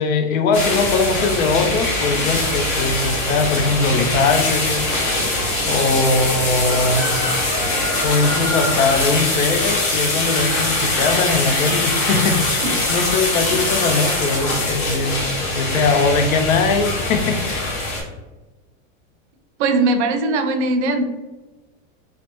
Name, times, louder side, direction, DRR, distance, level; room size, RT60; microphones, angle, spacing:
voice 1, 0.0-4.9 5.6-7.1 8.0-15.2 15.5-17.6, left 4 dB, 85° left, 6 dB, 0.6 m, -20 dB
sound 1, 0.5-18.0, left 2 dB, 70° left, 1.4 m, -22 dB
voice 2, 19.6-21.0, right 2 dB, 60° right, 6 dB, 0.5 m, -19 dB
3.2 x 2.1 x 3.0 m, 1.2 s
supercardioid pair, 160°, 40 cm